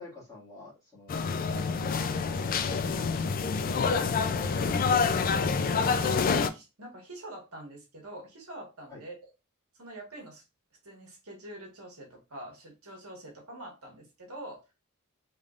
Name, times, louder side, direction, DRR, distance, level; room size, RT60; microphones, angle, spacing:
voice 1, 0.0-4.1 8.9-9.0, left 2 dB, 15° left, -6 dB, 1.9 m, -48 dB
sound 1, 1.1-6.5, left 5 dB, 40° left, 0.3 m, -27 dB
voice 2, 5.2-9.3 9.8-10.4 10.8-14.6, right 1 dB, 70° right, 0 dB, 1.5 m, -45 dB
3.6 x 3.4 x 2.4 m, 0.27 s
head